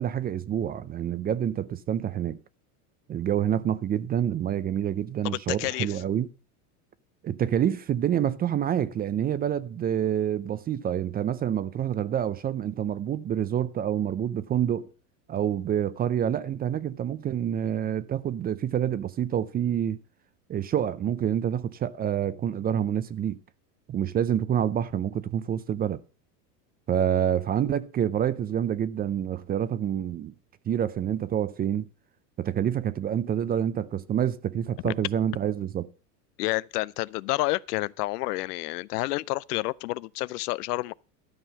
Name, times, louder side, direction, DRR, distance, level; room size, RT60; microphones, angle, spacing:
voice 1, 0.0-2.4 3.1-6.3 7.2-14.9 15.3-20.0 20.5-23.4 23.9-26.0 26.9-30.3 30.7-31.9 32.4-35.9, right 9 dB, 20° right, 0.4 m, -27 dB
voice 2, 5.2-6.0 34.8-34.9 36.4-40.9, left 20 dB, 80° left, 0.6 m, -29 dB
12.5 x 5.5 x 7.1 m
supercardioid pair, 110°, 47 cm